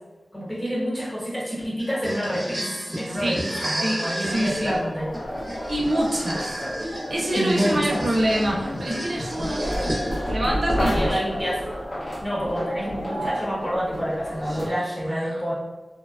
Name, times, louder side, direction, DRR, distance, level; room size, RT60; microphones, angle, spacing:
voice 1, 0.3-5.1 7.3-8.0 10.8-11.6 12.2-15.5, equal, 10° left, -6 dB, 1.0 m, -28 dB
sound 1, 1.8-10.4, right 1 dB, 20° right, 0.6 m, -33 dB
voice 2, 3.1-3.4 3.8-4.8 5.7-6.6 7.1-9.6 10.3-11.1 14.5-15.4, right 1 dB, 65° right, -2 dB, 0.4 m, -26 dB
sound 2, 4.3-14.7, equal, 50° left, 0.6 m, -30 dB
2.8 x 2.2 x 2.3 m, 1.2 s
wide cardioid pair, 100°, 0 cm